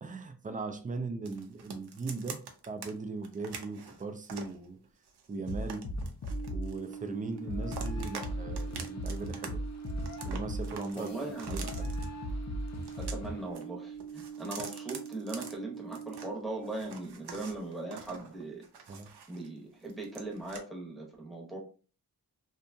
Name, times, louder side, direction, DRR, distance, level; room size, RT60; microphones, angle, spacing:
voice 1, 0.0-4.8 5.3-5.9 6.5-9.6 10.2-11.1 11.5-11.9 18.9-19.1, right 3 dB, 20° right, 0.3 m, -39 dB
sound 1, 1.3-2.9 3.2-4.6 5.1-7.1 7.4-8.3 8.6-9.5 9.7-12.1 12.7-13.7 13.9-16.3 16.6-19.5 19.8-20.6, right 6 dB, 80° right, 0.6 m, -45 dB
sound 2, 5.5-6.8 7.5-13.5, equal, 45° left, 0.5 m, -37 dB
sound 3, 6.3-16.3, right 7 dB, 55° right, 1.0 m, -44 dB
voice 2, 10.9-11.7 13.0-18.6 19.3-21.6, right 2 dB, ahead, 0.8 m, -39 dB
2.7 x 2.2 x 2.6 m
wide cardioid pair, 105°, 39 cm